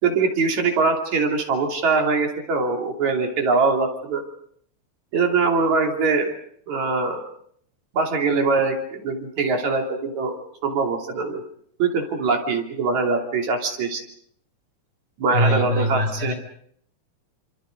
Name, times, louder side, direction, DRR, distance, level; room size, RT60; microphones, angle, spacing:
voice 1, 0.0-4.2 5.1-6.3 6.7-7.2 7.9-11.4 11.8-14.0 15.2-16.3, right 4 dB, 75° right, 3 dB, 4.3 m, -22 dB
voice 2, 15.3-16.3, equal, 25° right, 4 dB, 5.6 m, -22 dB
29.0 x 26.0 x 5.3 m, 0.67 s
omnidirectional pair, 3.3 m